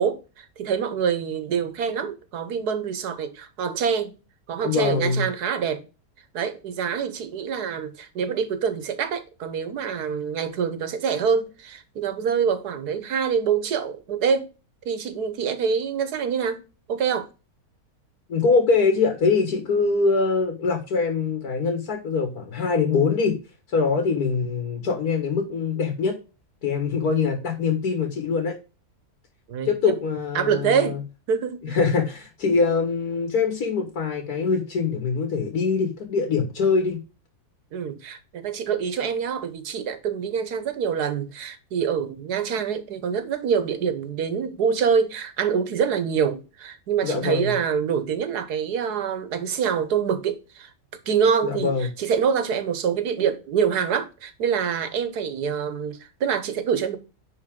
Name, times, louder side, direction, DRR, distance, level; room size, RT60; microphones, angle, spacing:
voice 1, 0.0-4.1 4.5-5.8 6.3-14.5 14.8-16.6 16.9-17.3 29.5-29.9 30.3-31.0 31.3-31.8 37.7-50.7 51.1-57.0, right 7 dB, 90° right, 1.6 m, -25 dB
voice 2, 4.6-5.2 18.3-23.4 23.7-26.2 26.6-28.5 29.6-31.0 31.6-37.0 47.0-47.5 51.4-51.9, left 4 dB, 75° left, 2.0 m, -23 dB
10.0 x 4.0 x 3.7 m
omnidirectional pair, 1.6 m